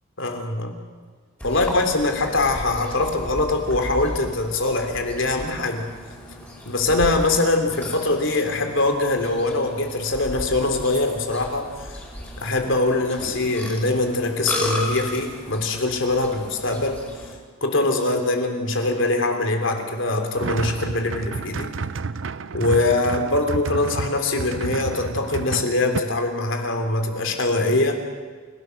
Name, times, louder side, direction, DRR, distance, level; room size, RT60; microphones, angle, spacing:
voice 1, 0.2-0.8 1.4-5.9 6.6-11.9 12.4-17.0 17.6-21.7 22.5-28.0, left 2 dB, 70° left, 5 dB, 3.3 m, -23 dB
Burping eructation, 1.4-17.3, left 1 dB, 10° left, 4.9 m, -35 dB
sound 1, 20.3-26.0, right 4 dB, 70° right, 0.7 m, -30 dB
29.5 x 17.0 x 6.6 m, 1.5 s
head